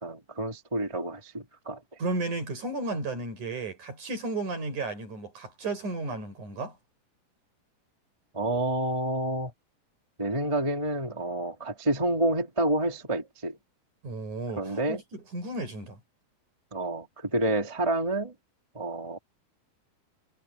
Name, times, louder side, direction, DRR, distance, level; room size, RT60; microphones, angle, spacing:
voice 1, 0.0-1.8 8.3-9.5 10.2-13.6 14.6-15.0 16.7-18.3 18.7-19.2, right 1 dB, 10° right, 2.8 m, -29 dB
voice 2, 2.0-6.7 14.0-16.0, right 2 dB, 50° right, 8.2 m, -33 dB
omnidirectional pair, 4.3 m